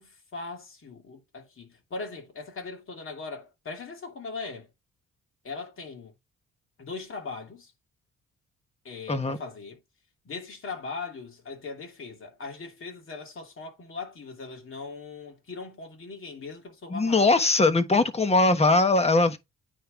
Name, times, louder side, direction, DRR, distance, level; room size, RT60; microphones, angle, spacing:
voice 1, 0.0-4.7 5.4-6.1 6.8-7.7 8.8-9.8 10.2-17.3, left 4 dB, 45° left, 2.8 m, -39 dB
voice 2, 16.9-19.4, left 3 dB, 20° left, 1.3 m, -21 dB
9.3 x 3.6 x 3.9 m
cardioid pair, 90°, 30 cm